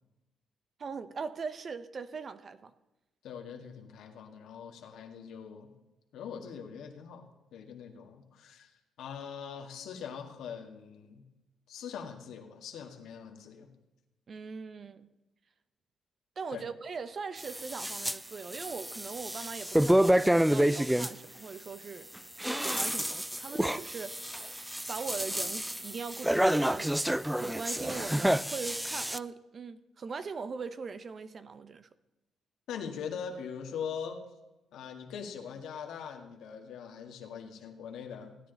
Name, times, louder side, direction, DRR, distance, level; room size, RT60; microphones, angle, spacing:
voice 1, 0.8-2.7 14.3-15.1 16.4-22.1 22.5-24.4 24.9-26.9 27.4-31.9, right 5 dB, 45° right, 0.8 m, -40 dB
voice 2, 3.2-5.7 6.1-7.3 7.5-8.7 9.0-11.2 11.7-13.7 16.5-16.7 32.7-34.2 34.7-38.4, left 7 dB, 80° left, 1.8 m, -42 dB
sound 1, 17.4-18.2 18.5-21.1 22.2-29.2, right 1 dB, 5° right, 0.4 m, -29 dB
16.0 x 9.7 x 4.0 m
cardioid pair, 90°, 0 cm